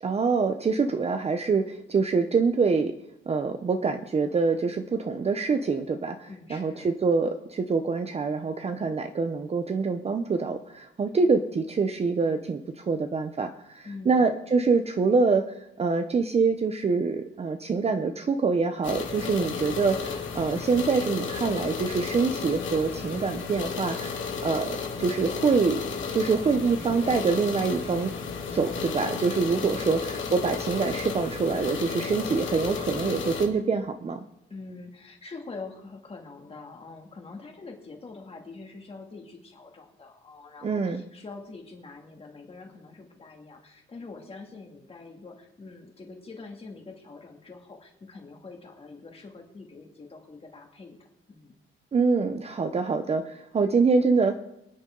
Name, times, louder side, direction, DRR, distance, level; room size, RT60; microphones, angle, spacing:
voice 1, 0.0-2.9 3.3-15.4 15.8-25.8 26.1-28.1 28.5-34.2 40.6-41.0 51.9-54.3, right 4 dB, 30° right, 7 dB, 0.7 m, -25 dB
voice 2, 6.3-6.9 13.8-14.3 29.6-30.2 34.5-51.5, left 3 dB, 30° left, 2 dB, 2.2 m, -44 dB
sound 1, 18.8-33.5, left 5 dB, 65° left, 2.2 m, -33 dB
24.5 x 9.5 x 3.8 m, 0.85 s
wide cardioid pair, 170°, 21 cm